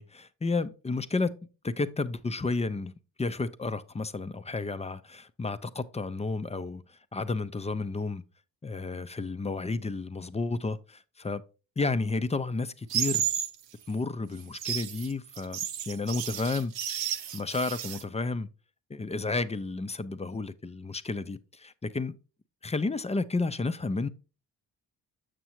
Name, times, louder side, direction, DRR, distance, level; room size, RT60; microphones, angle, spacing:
voice 1, 0.0-1.4 1.6-2.9 3.2-6.8 7.1-8.2 8.6-11.4 11.8-13.3 13.9-15.6 15.9-16.7 17.3-18.5 18.9-22.2 22.6-24.1, left 3 dB, 15° left, 0.5 m, -31 dB
sound 1, 12.9-13.5 14.4-18.0, right 9 dB, 70° right, 0.8 m, -32 dB
6.8 x 6.2 x 3.0 m
supercardioid pair, 50°, 45 cm